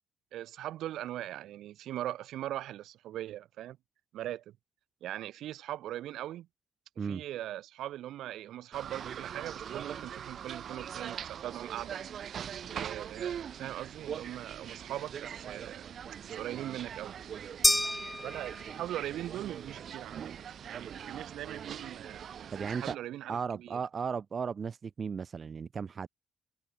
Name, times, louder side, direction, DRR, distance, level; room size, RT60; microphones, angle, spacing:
voice 1, 0.3-3.8 4.1-4.5 5.0-6.5 7.0-12.0 12.6-15.9 16.2-17.1 18.2-22.2 22.8-23.8, right 13 dB, 80° right, 7.8 m, -40 dB
sound 1, 8.7-23.0, right 8 dB, 60° right, 6.3 m, -42 dB
sound 2, 17.6-19.1, left 1 dB, 10° left, 3.3 m, -29 dB
voice 2, 22.5-23.0 23.3-26.1, right 6 dB, 45° right, 1.6 m, -35 dB
cardioid pair, 90°, 0 cm